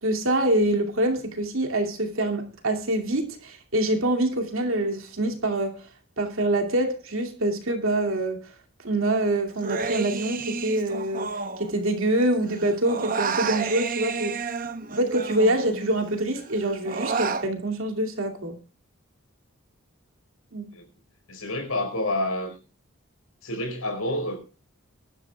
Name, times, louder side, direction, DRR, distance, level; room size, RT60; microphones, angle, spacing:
voice 1, 0.0-5.8 6.2-8.5 8.8-14.5 14.9-18.6 20.5-20.7, right 1 dB, 70° right, 2.5 m, -25 dB
Human voice, 9.6-12.2 12.5-16.0 16.4-17.5, right 5 dB, 40° right, 0.9 m, -31 dB
voice 2, 21.3-22.5 23.4-24.4, left 1 dB, 75° left, 4.6 m, -28 dB
23.5 x 12.0 x 2.3 m
head